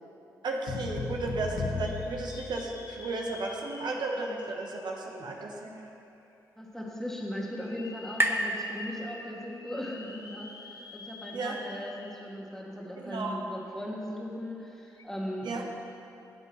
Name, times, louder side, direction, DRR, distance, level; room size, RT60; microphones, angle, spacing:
voice 1, 0.4-5.8 11.3-11.6 13.0-13.4 15.4-15.6, right 3 dB, 60° right, 0 dB, 1.2 m, -34 dB
sound 1, 0.7-3.2, left 4 dB, 80° left, 1.2 m, -36 dB
sound 2, 1.8-5.8 6.3-6.4 7.5-12.4 12.8-12.9 14.9-15.0, left 3 dB, 50° left, 0.9 m, -48 dB
sound 3, 5.8-9.6, right 1 dB, 25° right, 1.0 m, -35 dB
voice 2, 6.6-15.6, left 1 dB, 5° left, -2 dB, 1.8 m, -38 dB
13.0 x 7.7 x 3.2 m, 2.8 s
hypercardioid pair, 40°, 8 cm